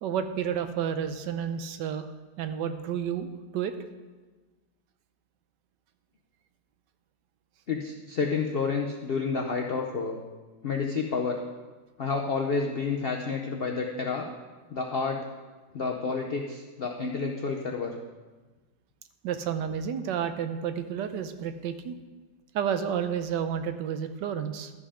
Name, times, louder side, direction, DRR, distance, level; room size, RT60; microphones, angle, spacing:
voice 1, 0.0-2.1 2.4-3.7 19.2-22.0 22.5-24.7, right 8 dB, 80° right, 9 dB, 1.3 m, -31 dB
voice 2, 7.7-10.2 10.6-11.4 12.0-14.3 14.7-15.2 15.7-17.9, left 4 dB, 65° left, 1 dB, 0.5 m, -29 dB
12.5 x 5.6 x 4.9 m, 1.3 s
omnidirectional pair, 1.9 m